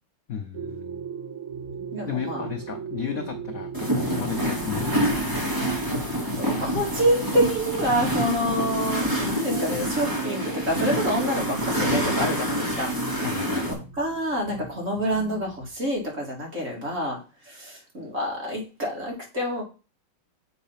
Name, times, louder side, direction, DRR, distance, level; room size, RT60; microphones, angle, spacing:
voice 1, 0.3-1.1 2.1-3.7 4.0-6.6 13.1-13.7, left 8 dB, 60° left, 6 dB, 0.9 m, -35 dB
sound 1, 0.5-15.7, right 6 dB, 70° right, 0.9 m, -40 dB
voice 2, 1.9-2.5 3.1-3.2 6.4-12.9 13.7-19.6, equal, 35° right, -2 dB, 2.8 m, -27 dB
sound 2, 3.7-13.7, equal, 10° right, 1.9 m, -27 dB
7.5 x 4.0 x 5.7 m, 0.32 s
omnidirectional pair, 2.3 m